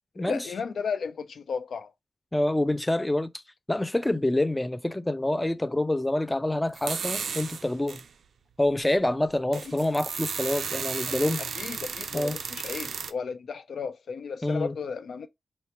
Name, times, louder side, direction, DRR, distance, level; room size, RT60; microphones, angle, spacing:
voice 1, 0.2-1.9 9.5-9.8 11.1-11.2 11.5-15.3, left 5 dB, 80° left, 0.4 m, -34 dB
voice 2, 2.3-3.3 3.7-8.0 8.6-11.4 12.1-12.4 14.4-14.7, left 1 dB, 10° left, 0.3 m, -26 dB
sound 1, 6.7-8.1 8.7-8.8 9.3-13.1, right 6 dB, 80° right, 0.3 m, -34 dB
4.2 x 2.1 x 2.8 m
wide cardioid pair, 115°, 0 cm